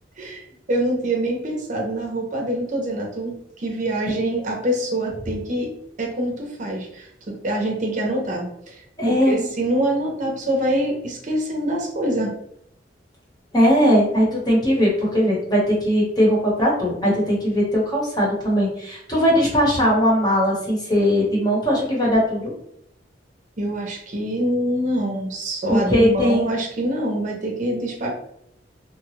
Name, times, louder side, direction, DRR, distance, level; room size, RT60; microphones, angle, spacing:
voice 1, 0.2-5.7 6.0-12.3 23.6-28.1, right 1 dB, 45° right, -1 dB, 0.7 m, -25 dB
voice 2, 9.0-9.4 13.5-22.5 25.7-26.4, equal, 25° left, -4 dB, 1.1 m, -19 dB
2.8 x 2.3 x 3.1 m, 0.74 s
head